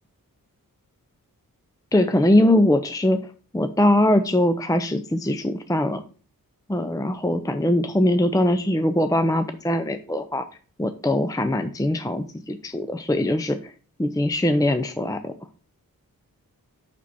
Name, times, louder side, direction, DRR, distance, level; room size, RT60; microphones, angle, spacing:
voice 1, 1.9-3.2 3.5-6.0 6.7-10.4 10.8-13.7 14.0-15.3, left 1 dB, 10° left, 9 dB, 0.6 m, -21 dB
6.1 x 5.8 x 4.2 m, 0.38 s
cardioid pair, 55°, 36 cm